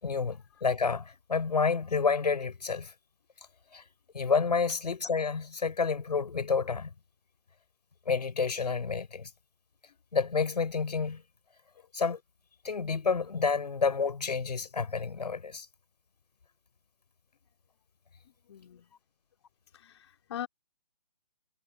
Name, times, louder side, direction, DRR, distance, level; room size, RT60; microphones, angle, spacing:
voice 1, 0.0-2.9 3.7-3.8 4.1-6.9 8.1-9.3 10.1-11.2 11.9-12.2 12.6-15.7, left 5 dB, 75° left, 5.8 m, -29 dB
voice 2, 18.5-18.9 19.7-20.5, left 10 dB, 40° left, 3.8 m, -42 dB
hypercardioid pair, 160°, 21 cm